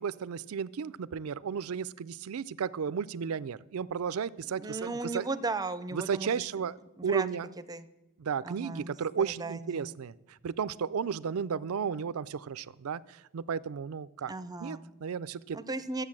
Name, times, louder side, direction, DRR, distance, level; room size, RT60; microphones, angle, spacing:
voice 1, 0.0-5.3 5.9-7.5 8.2-14.3 14.6-15.6, right 6 dB, 80° right, 18 dB, 0.4 m, -34 dB
voice 2, 4.6-6.3 7.0-7.3 7.7-7.9 8.4-8.9 9.2-9.9 14.3-14.9 15.5-16.0, right 3 dB, 20° right, 13 dB, 0.6 m, -36 dB
12.5 x 8.1 x 7.4 m, 1.0 s
head